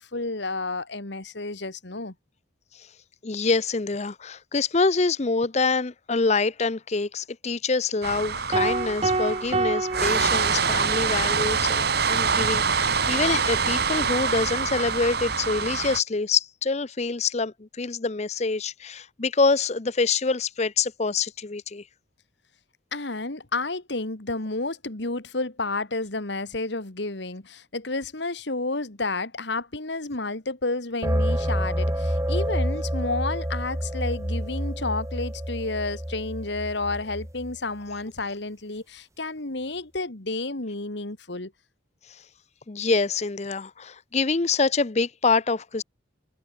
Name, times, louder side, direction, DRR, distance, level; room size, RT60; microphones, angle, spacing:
voice 1, 0.0-2.1 22.9-41.5, left 3 dB, 65° left, 2.0 m, -31 dB
voice 2, 3.2-21.8 42.7-45.8, left 4 dB, 35° left, 0.6 m, -26 dB
sound 1, 8.0-16.0, right 5 dB, 55° right, 2.1 m, -25 dB
sound 2, 8.5-11.0, right 3 dB, 30° right, 0.8 m, -27 dB
sound 3, 31.0-37.6, equal, 15° right, 3.0 m, -28 dB
head